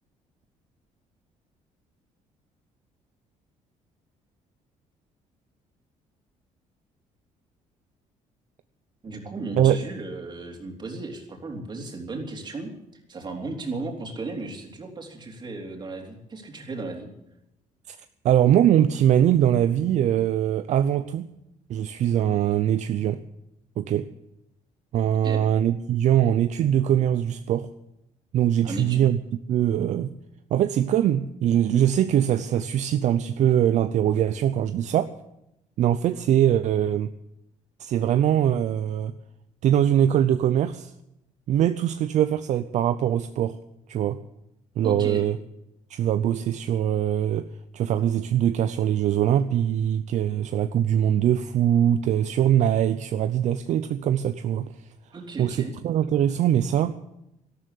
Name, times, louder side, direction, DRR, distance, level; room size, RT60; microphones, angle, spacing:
voice 1, 9.0-12.7 13.1-17.1 25.2-25.5 28.6-29.1 44.8-45.2 55.1-55.8, right 2 dB, 35° right, 2 dB, 3.3 m, -35 dB
voice 2, 18.2-21.3 21.7-23.2 23.8-24.1 24.9-27.7 28.3-29.2 29.5-30.1 30.5-35.1 35.8-37.1 37.8-39.1 39.6-40.9 41.5-43.6 43.9-44.2 44.8-45.4 45.9-47.5 47.7-54.9 55.4-57.0, right 10 dB, 65° right, 11 dB, 0.6 m, -22 dB
13.0 x 12.5 x 8.2 m, 0.86 s
cardioid pair, 115°, 13 cm